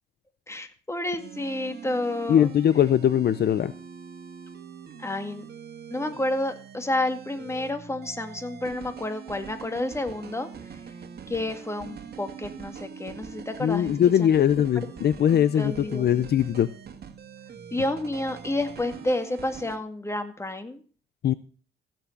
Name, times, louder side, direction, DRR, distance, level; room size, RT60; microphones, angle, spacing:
voice 1, 0.5-2.5 5.0-5.5 5.9-10.5 11.3-14.3 15.3-16.2 17.7-20.8, left 1 dB, 15° left, 7 dB, 2.0 m, -30 dB
sound 1, 1.2-19.8, right 7 dB, 50° right, 1.9 m, -43 dB
voice 2, 2.3-3.7 13.6-16.7 21.2-21.3, left 10 dB, 55° left, 15 dB, 0.6 m, -21 dB
15.0 x 7.5 x 6.6 m, 0.40 s
cardioid pair, 90°, 20 cm